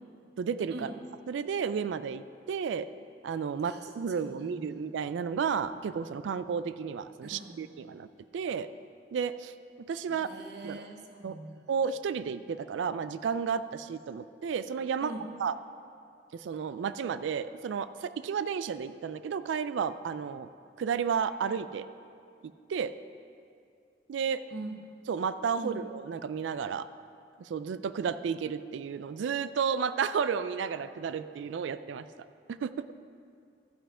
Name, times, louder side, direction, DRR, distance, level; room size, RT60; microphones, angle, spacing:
voice 1, 0.4-0.9 1.3-2.9 3.2-8.1 8.3-8.7 9.1-9.5 9.9-10.3 10.6-10.8 11.2-11.4 11.7-15.1 15.4-15.6 16.3-20.5 20.8-21.9 22.7-22.9 24.1-24.4 25.1-26.9 27.4-32.9, right 6 dB, 85° right, 13 dB, 0.3 m, -32 dB
voice 2, 3.6-4.8 7.2-7.7 10.1-11.6 15.0-15.3 24.5-24.8 25.6-25.9, right 2 dB, 65° right, 4 dB, 0.9 m, -43 dB
13.5 x 5.7 x 4.9 m, 2.4 s
head